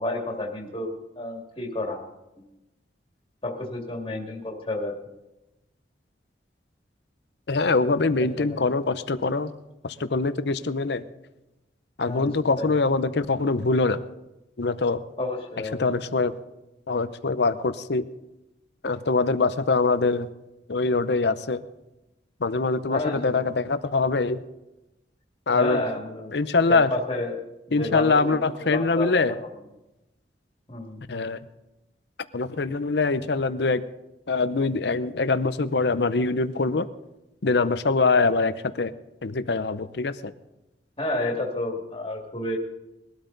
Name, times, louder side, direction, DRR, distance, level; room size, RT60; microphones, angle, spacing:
voice 1, 0.0-2.0 3.4-4.9 8.2-8.6 12.1-12.3 12.6-12.7 15.2-15.8 22.9-23.2 25.5-26.4 26.7-27.3 27.7-29.5 30.7-31.0 41.0-42.6, left 1 dB, 30° left, 0 dB, 2.2 m, -30 dB
voice 2, 7.5-9.5 9.8-11.0 12.0-14.0 14.6-15.0 15.7-16.3 16.9-18.1 18.8-20.3 20.7-21.6 22.4-24.4 25.5-25.8 26.3-26.9 27.7-29.3 31.1-31.4 32.3-33.8 34.3-36.9 37.4-38.9 39.2-40.3, left 3 dB, 65° left, 13 dB, 0.7 m, -23 dB
20.5 x 12.5 x 4.0 m, 0.97 s
head